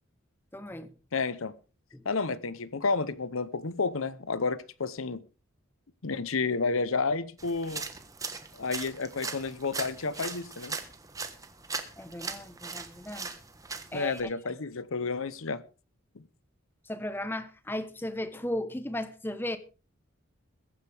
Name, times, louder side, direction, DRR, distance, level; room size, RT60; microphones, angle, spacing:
voice 1, 0.5-0.9 1.9-2.0 12.0-13.3 13.9-14.2 16.8-19.6, left 1 dB, 10° left, 1.0 m, -35 dB
voice 2, 1.1-1.5 2.0-5.2 6.0-7.8 8.5-10.8 13.9-15.6 16.2-16.3, left 4 dB, 75° left, 0.9 m, -31 dB
sound 1, 7.4-14.2, right 4 dB, 15° right, 1.3 m, -39 dB
22.0 x 9.4 x 3.5 m
head